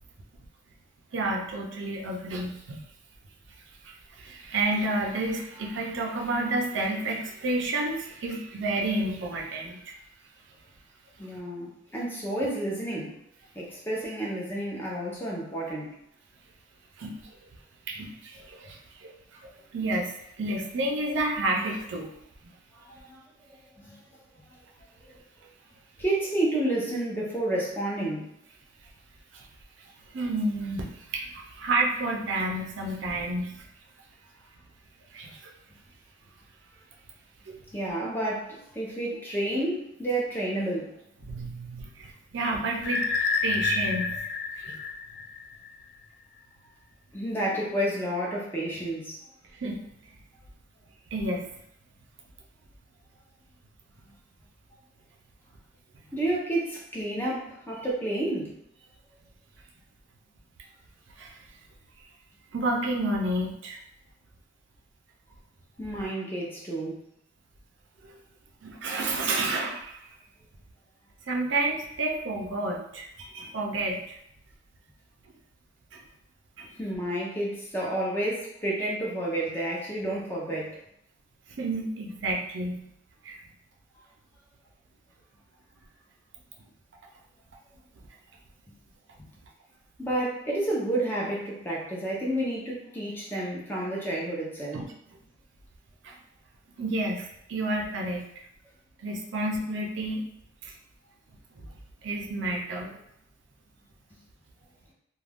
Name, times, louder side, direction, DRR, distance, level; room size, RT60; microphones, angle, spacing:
voice 1, 1.1-2.8 3.8-9.9 17.0-17.2 17.9-19.1 19.4-22.1 29.3-29.5 30.1-33.6 35.1-35.5 37.5-37.6 41.2-43.0 43.4-44.2 44.6-44.8 49.5-49.8 51.1-51.5 61.2-61.4 62.5-63.8 68.6-70.1 71.3-74.2 75.9-76.0 76.6-76.7 81.6-82.9 83.2-83.4 94.7-94.9 96.0-96.2 96.8-98.2 99.0-100.2 100.6-100.7 102.0-102.9, right 2 dB, 65° right, 0 dB, 0.5 m, -30 dB
voice 2, 11.2-13.1 13.5-15.9 22.7-23.2 23.7-24.0 26.0-28.3 37.7-40.9 47.1-49.2 56.1-58.5 65.8-67.0 76.8-80.7 90.0-94.8, right 1 dB, 10° left, -4 dB, 0.6 m, -30 dB
sound 1, 42.8-45.7, left 5 dB, 55° left, 0.3 m, -29 dB
2.4 x 2.2 x 3.4 m, 0.78 s
head